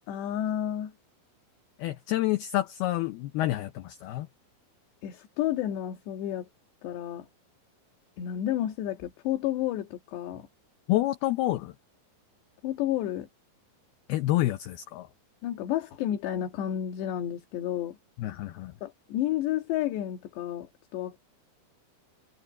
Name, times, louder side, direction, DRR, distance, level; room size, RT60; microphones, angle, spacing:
voice 1, 0.1-0.9 5.0-6.5 6.8-7.3 8.2-10.5 12.6-13.3 15.4-18.0 18.8-21.2, left 12 dB, 70° left, 3.9 m, -31 dB
voice 2, 1.8-4.3 10.9-11.7 14.1-15.1 18.2-18.7, left 15 dB, 90° left, 2.2 m, -28 dB
omnidirectional pair, 5.5 m